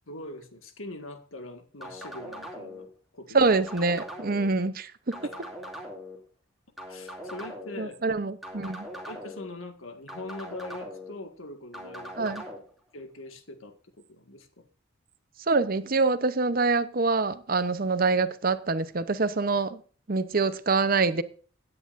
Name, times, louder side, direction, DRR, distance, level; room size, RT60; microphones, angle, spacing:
voice 1, 0.1-2.9 3.1-3.4 6.9-8.0 9.1-12.5 12.9-14.7, left 1 dB, 80° left, 1.8 m, -42 dB
sound 1, 1.8-2.9 3.5-4.5 5.1-6.2 6.8-7.8 8.4-9.5 10.1-11.1 11.7-12.6, equal, ahead, 2.6 m, -41 dB
voice 2, 3.3-5.2 7.8-8.9 12.2-12.4 15.5-19.8 20.1-21.2, right 3 dB, 45° right, 0.8 m, -25 dB
17.0 x 9.9 x 2.6 m
head